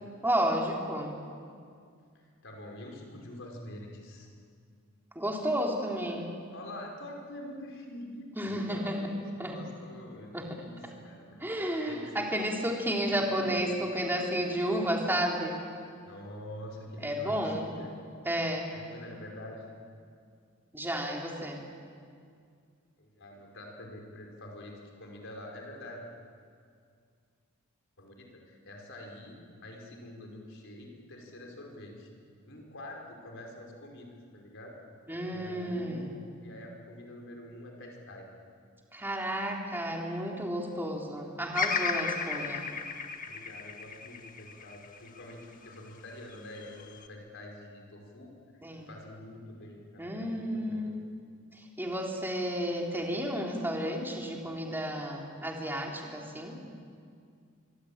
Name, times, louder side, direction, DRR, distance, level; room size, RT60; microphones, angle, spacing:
voice 1, 0.2-1.1 5.2-6.3 8.4-9.0 9.4-9.6 10.3-10.5 11.4-15.6 17.0-17.7 18.2-18.7 20.7-21.6 35.1-36.1 38.9-42.6 48.6-48.9 50.0-51.0 51.8-56.6, equal, 10° right, 0 dB, 3.5 m, -32 dB
voice 2, 2.2-4.3 6.5-10.8 11.0-12.0 13.0-13.6 16.0-17.9 18.7-19.7 23.0-26.0 28.0-32.1 32.5-34.1 34.3-34.7 35.3-38.3 43.2-48.6 48.9-50.9, left 1 dB, 60° left, 1 dB, 5.2 m, -46 dB
Bird vocalization bird call bird song, 41.5-45.8 46.3-47.1, left 5 dB, 40° left, 1.7 m, -34 dB
24.5 x 24.0 x 8.8 m, 2.2 s
head